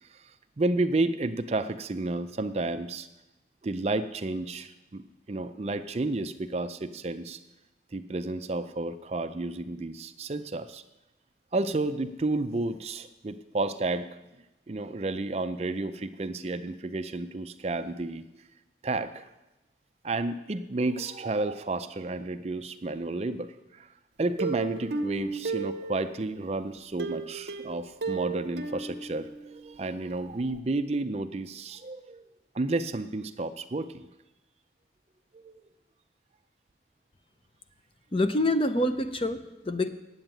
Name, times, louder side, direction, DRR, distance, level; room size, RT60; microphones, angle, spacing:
voice 1, 0.0-3.1 3.6-7.4 7.9-10.8 11.5-14.2 14.7-18.2 18.8-19.3 20.0-23.9 24.2-32.2 32.5-34.1 35.3-35.6, right 2 dB, 35° right, 10 dB, 0.5 m, -31 dB
Plucked string instrument, 24.4-26.4 27.0-29.8 30.1-30.2 30.6-30.7, right 4 dB, 65° right, 0.8 m, -34 dB
voice 2, 38.1-39.9, left 1 dB, 30° left, 10 dB, 0.6 m, -26 dB
9.3 x 8.0 x 8.9 m, 0.98 s
head